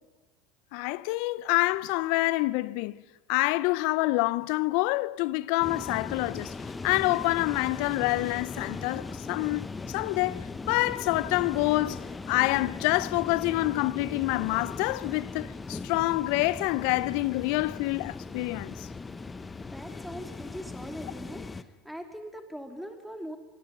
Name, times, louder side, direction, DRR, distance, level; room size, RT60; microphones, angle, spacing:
voice 1, 0.7-3.0 3.3-6.5 6.8-18.9, left 20 dB, 65° left, 0.6 m, -27 dB
sound 1, 5.6-21.6, left 4 dB, 20° left, 1.1 m, -39 dB
voice 2, 19.7-23.4, equal, ahead, 3.3 m, -41 dB
24.5 x 22.5 x 5.5 m
hypercardioid pair, 85°, 0 cm